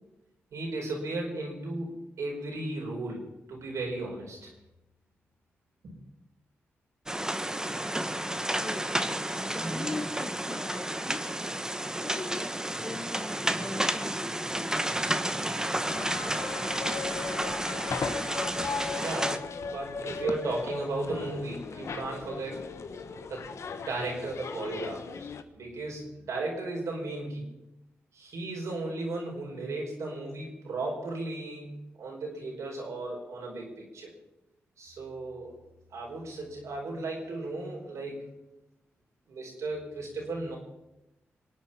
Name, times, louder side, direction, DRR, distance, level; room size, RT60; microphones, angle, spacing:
voice 1, 0.5-3.2 3.5-4.5 5.8-5.9 18.6-18.7 19.0-22.7 23.3-23.5 23.8-25.3 25.5-27.4 28.1-34.1 34.8-35.5 35.9-38.3 39.3-40.6, right 2 dB, 80° right, 5.0 m, -35 dB
sound 1, 7.1-19.4, right 1 dB, 10° right, 1.3 m, -31 dB
voice 2, 8.5-9.0 9.4-11.4 12.0-15.0, left 2 dB, 30° left, 1.4 m, -41 dB
sound 2, 15.8-25.4, left 5 dB, 70° left, 1.2 m, -37 dB
24.0 x 8.9 x 5.8 m
supercardioid pair, 45°, 5 cm